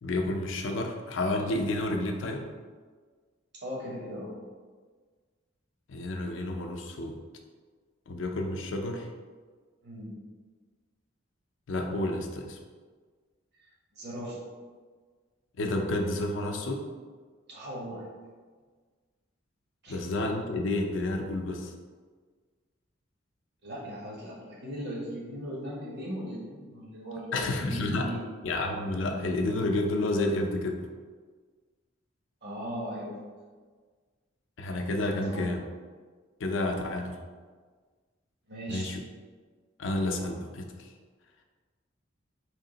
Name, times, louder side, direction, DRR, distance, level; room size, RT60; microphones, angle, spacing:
voice 1, 0.0-2.5 5.9-7.2 8.1-9.1 11.7-12.6 15.6-16.9 19.9-21.7 27.3-28.1 28.4-30.8 34.6-35.6 36.4-37.2 38.7-39.0 39.8-40.9, left 2 dB, 70° left, 3 dB, 0.5 m, -30 dB
voice 2, 3.6-4.3 9.8-10.2 13.9-14.5 17.5-18.1 19.8-20.0 23.6-28.2 32.4-33.3 35.3-35.5 38.5-38.9, equal, 60° right, -3 dB, 1.1 m, -38 dB
3.6 x 2.8 x 3.8 m, 1.5 s
head